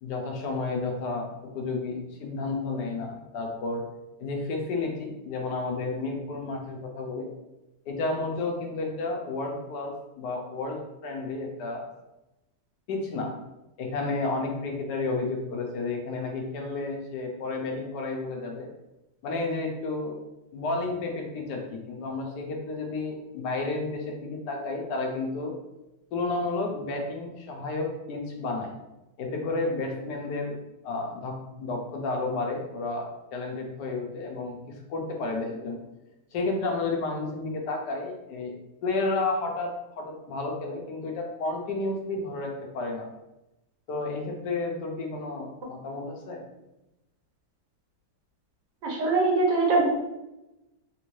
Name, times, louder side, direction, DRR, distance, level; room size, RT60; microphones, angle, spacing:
voice 1, 0.0-1.3 1.5-3.8 4.2-7.3 7.9-11.9 12.9-13.3 13.8-18.7 19.2-20.2 20.5-25.5 26.1-28.7 29.2-30.5 30.8-35.8 36.3-38.6 38.8-43.1 43.9-46.4, left 3 dB, 75° left, 1 dB, 1.2 m, -31 dB
voice 2, 48.8-49.9, right 3 dB, 80° right, -1 dB, 1.5 m, -22 dB
3.5 x 2.5 x 3.1 m, 0.95 s
omnidirectional pair, 1.8 m